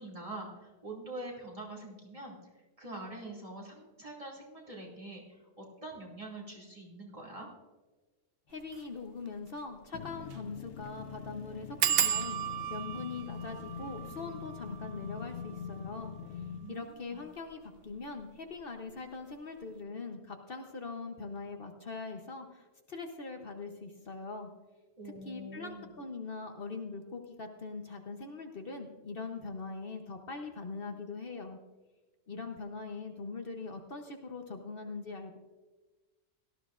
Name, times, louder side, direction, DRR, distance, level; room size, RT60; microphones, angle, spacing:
voice 1, 0.0-7.5 16.6-17.2 25.0-25.9 32.3-32.4, right 2 dB, 30° right, -3 dB, 2.6 m, -45 dB
voice 2, 8.5-24.5 25.2-31.6 32.3-35.4, left 4 dB, 55° left, 4 dB, 1.1 m, -42 dB
sound 1, 8.6-8.8 9.3-9.4 9.6-9.7 10.2-10.5 10.7-10.8 11.8-17.1 17.8-18.3 18.6-18.9 19.2-19.3, right 9 dB, 65° right, 0.8 m, -35 dB
sound 2, 9.9-16.7, left 7 dB, 80° left, 0.9 m, -44 dB
17.5 x 13.0 x 2.5 m, 1.2 s
omnidirectional pair, 1.2 m